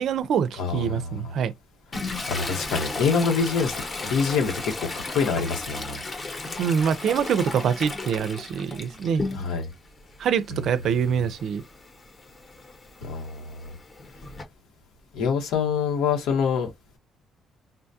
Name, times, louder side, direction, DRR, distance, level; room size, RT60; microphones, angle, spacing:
voice 1, 0.0-1.5 6.6-9.3 10.2-11.6, right 7 dB, 60° right, 0.4 m, -25 dB
voice 2, 0.6-1.3 2.3-3.8 4.1-6.0 9.3-9.7 13.0-13.7 15.1-16.7, left 5 dB, 90° left, 1.2 m, -26 dB
Toilet flush, 1.9-9.7 10.1-14.4, left 3 dB, 25° left, 0.8 m, -35 dB
3.9 x 2.3 x 2.7 m
cardioid pair, 145°, 0 cm